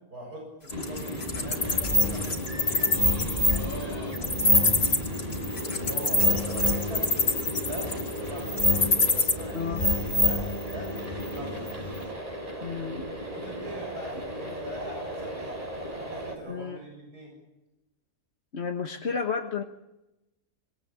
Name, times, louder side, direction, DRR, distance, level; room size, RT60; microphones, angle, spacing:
voice 1, 0.1-5.2 5.7-7.1 7.6-8.7 9.1-11.7 13.3-15.5 16.0-17.3, right 1 dB, 90° right, 0 dB, 8.1 m, -41 dB
Wild animals, 0.7-9.3, left 4 dB, 80° left, 3.3 m, -26 dB
sound 1, 0.7-16.4, equal, 25° right, 4.8 m, -36 dB
sound 2, 1.6-12.1, left 1 dB, 25° left, 2.3 m, -28 dB
voice 2, 12.6-13.0 16.5-16.8 18.5-19.6, left 6 dB, 45° left, 4 dB, 1.5 m, -32 dB
26.5 x 22.0 x 8.7 m, 0.96 s
omnidirectional pair, 1.6 m